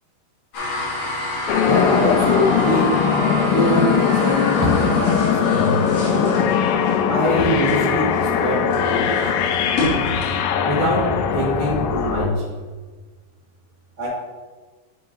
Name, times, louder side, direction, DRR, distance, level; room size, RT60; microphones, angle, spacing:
sound 1, 0.5-10.4, left 1 dB, 50° left, 2.7 m, -28 dB
sound 2, 1.5-12.3, left 7 dB, 80° left, 2.3 m, -20 dB
voice 1, 1.6-3.0 3.5-6.4 7.1-9.4 10.6-12.4 14.0-14.1, equal, 25° right, -6 dB, 1.4 m, -23 dB
11.5 x 5.1 x 2.7 m, 1.3 s
omnidirectional pair, 4.6 m